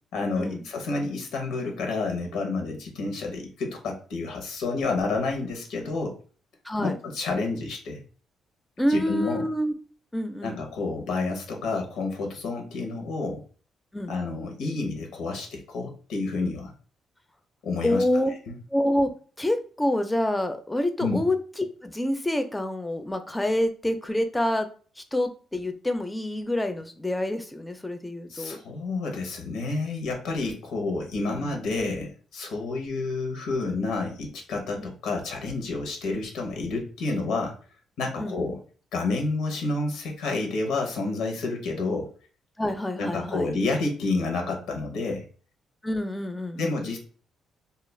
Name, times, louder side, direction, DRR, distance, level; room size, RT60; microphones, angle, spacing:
voice 1, 0.1-6.1 6.8-8.0 8.9-9.5 10.4-13.4 14.1-16.7 17.6-18.0 18.5-18.6 21.0-21.2 28.3-37.6 38.0-38.6 38.9-42.1 43.0-45.3 46.6-47.0, left 3 dB, 85° left, 3 dB, 0.7 m, -29 dB
voice 2, 6.6-7.0 8.8-9.7 10.1-10.6 13.9-14.2 17.8-18.3 18.7-19.1 19.4-24.7 25.0-28.6 31.3-31.6 34.8-34.9 38.2-38.4 42.6-43.5 45.8-46.9, left 1 dB, 10° left, 8 dB, 0.4 m, -27 dB
2.3 x 2.0 x 3.2 m, 0.40 s
cardioid pair, 90°, 0 cm